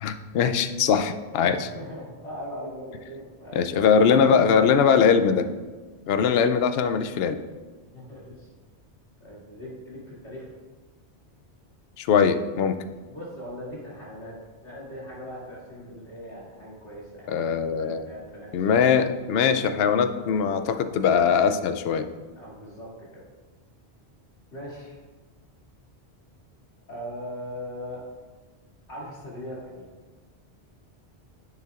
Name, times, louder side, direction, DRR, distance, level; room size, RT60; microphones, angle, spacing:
voice 1, 0.0-1.7 3.5-5.5 6.1-7.4 12.0-12.8 17.3-18.0 18.5-22.1, left 6 dB, 70° left, 10 dB, 0.7 m, -21 dB
voice 2, 1.4-3.5 6.1-6.3 7.9-8.5 9.2-10.5 13.0-14.3 14.6-17.3 17.7-18.5 22.4-22.9 24.5-25.0 26.9-28.0 28.9-29.9, equal, 85° left, -7 dB, 3.0 m, -39 dB
9.6 x 7.1 x 2.4 m, 1.4 s
omnidirectional pair, 1.1 m